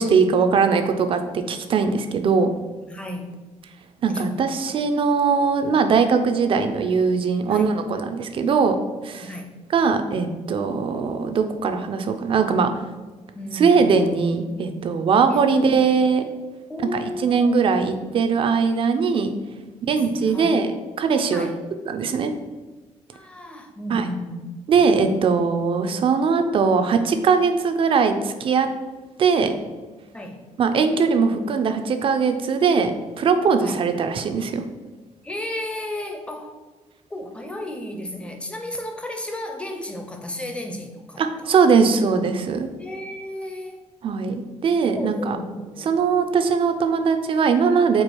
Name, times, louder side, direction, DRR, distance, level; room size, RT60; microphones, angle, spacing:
voice 1, 0.0-2.5 4.0-8.8 9.0-9.3 9.7-12.7 13.5-16.2 17.2-19.3 19.9-20.7 21.0-21.5 21.9-22.3 23.9-24.0 24.7-28.7 29.2-29.5 30.6-32.9 33.2-34.6 41.2-42.7 44.0-45.4 45.9-48.0, right 5 dB, 45° right, 7 dB, 0.4 m, -20 dB
voice 2, 2.9-3.4 4.0-4.4 7.5-7.7 9.2-9.6 13.3-13.9 15.3-15.9 16.7-17.8 19.9-20.5 21.3-21.6 23.1-24.6 30.1-30.4 33.6-33.8 35.2-36.6 37.1-41.6 42.8-43.8 44.8-46.0, left 1 dB, 10° left, 3 dB, 0.6 m, -34 dB
4.5 x 2.4 x 4.5 m, 1.3 s
cardioid pair, 120°, 12 cm